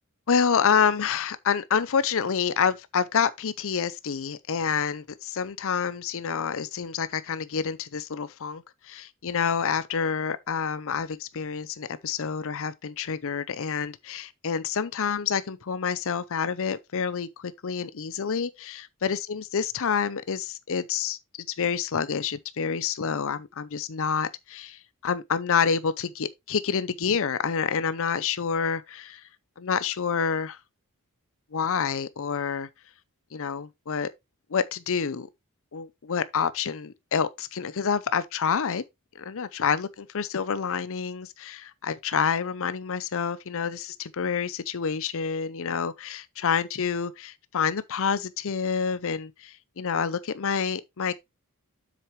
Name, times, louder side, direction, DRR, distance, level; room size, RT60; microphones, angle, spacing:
voice 1, 0.3-21.2 21.6-29.2 29.6-30.6 31.5-32.7 33.3-34.1 34.5-35.3 35.7-38.8 39.2-51.1, left 6 dB, 65° left, 0.6 m, -28 dB
7.6 x 6.7 x 3.1 m
head